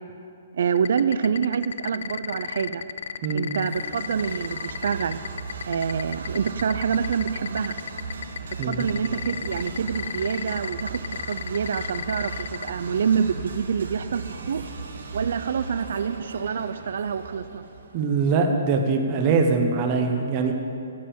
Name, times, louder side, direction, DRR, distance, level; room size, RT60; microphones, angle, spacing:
voice 1, 0.5-2.8 3.3-5.2 5.6-7.7 8.6-14.6 15.1-17.6, right 7 dB, 55° right, 12 dB, 0.4 m, -26 dB
sound 1, 0.8-12.7, left 7 dB, 55° left, 0.4 m, -32 dB
sound 2, 3.6-18.3, right 4 dB, 85° right, 1.3 m, -37 dB
voice 2, 8.6-8.9 17.9-20.5, right 4 dB, 25° right, 4 dB, 1.0 m, -22 dB
14.5 x 5.4 x 8.6 m, 2.6 s
hypercardioid pair, 175°, 0 cm